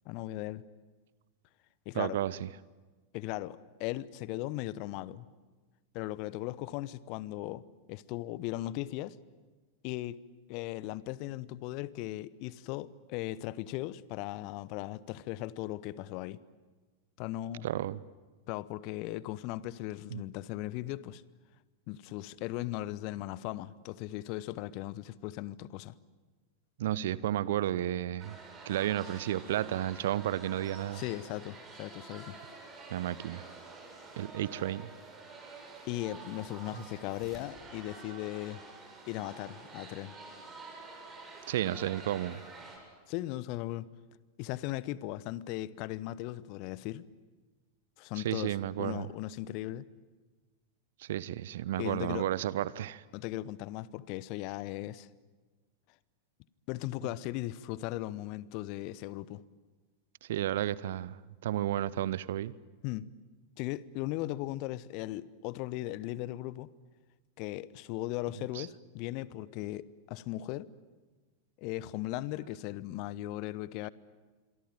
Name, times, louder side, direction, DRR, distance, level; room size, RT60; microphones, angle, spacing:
voice 1, 0.0-0.6 1.9-2.2 3.1-5.3 5.9-7.6 7.9-9.2 9.8-10.2 10.5-16.4 17.2-17.7 18.5-21.2 21.9-25.9 30.9-32.4 35.8-38.6 39.0-40.1 43.1-43.9 44.4-47.1 48.0-49.8 51.8-52.3 53.1-55.1 56.7-59.4 62.8-63.1 63.6-66.7 67.4-70.7 71.6-73.9, left 16 dB, 45° left, 0.9 m, -38 dB
voice 2, 2.0-2.5 17.6-18.0 20.1-20.2 26.8-28.4 28.7-31.0 32.9-33.4 34.2-34.9 41.5-42.4 48.2-49.1 51.0-53.0 60.3-62.5 68.6-68.7, right 12 dB, 55° right, 0.8 m, -32 dB
sound 1, 28.2-42.8, right 3 dB, 20° right, 7.9 m, -49 dB
27.0 x 23.5 x 9.2 m
figure-of-eight pair, 90°, 0 cm